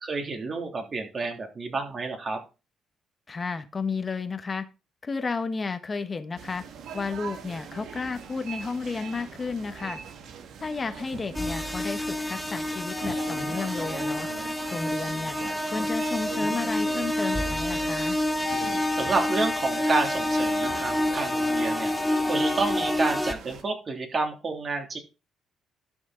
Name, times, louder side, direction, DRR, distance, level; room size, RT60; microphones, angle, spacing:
voice 1, 0.0-2.4 18.9-21.9 22.3-25.0, right 3 dB, 40° right, 3 dB, 3.2 m, -29 dB
voice 2, 3.3-4.6 5.0-6.6 6.9-10.0 10.6-14.3 14.7-15.4 15.7-18.2, left 4 dB, 30° left, 10 dB, 1.3 m, -32 dB
sound 1, 6.4-23.6, right 6 dB, 70° right, 1.8 m, -41 dB
sound 2, 11.3-23.3, left 1 dB, 10° left, 1.0 m, -28 dB
sound 3, 12.9-13.7 18.4-22.9, left 5 dB, 65° left, 2.4 m, -36 dB
12.5 x 6.3 x 3.9 m, 0.29 s
cardioid pair, 90°, 0 cm